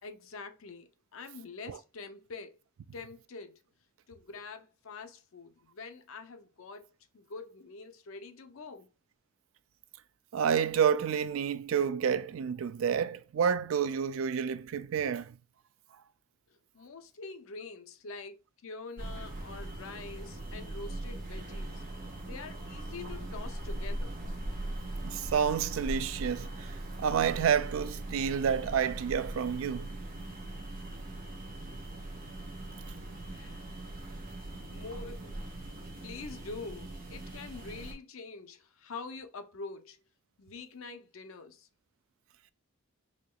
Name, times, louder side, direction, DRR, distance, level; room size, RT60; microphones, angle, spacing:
voice 1, 0.0-2.6 2.9-3.6 4.1-6.9 7.1-8.9 16.5-18.4 18.6-21.8 22.2-24.1 32.9-34.0 34.7-35.5 36.0-40.0 40.4-41.7, left 4 dB, 80° left, 0.6 m, -45 dB
voice 2, 10.3-15.4 25.0-29.9, right 7 dB, 75° right, 0.3 m, -29 dB
sound 1, 19.0-37.9, right 1 dB, 45° right, 1.2 m, -40 dB
4.3 x 2.9 x 2.3 m
head